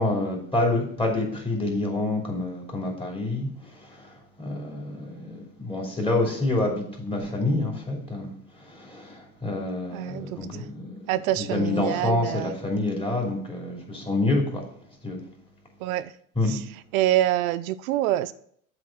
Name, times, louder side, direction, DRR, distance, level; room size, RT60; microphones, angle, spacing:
voice 1, 0.0-14.6 15.0-15.2 16.3-16.6, left 2 dB, 15° left, 2.8 m, -28 dB
voice 2, 9.9-10.6 11.1-12.5 15.8-16.1 16.5-16.6 16.9-18.3, right 13 dB, 85° right, 0.5 m, -26 dB
7.6 x 4.0 x 6.0 m
supercardioid pair, 100°, 42 cm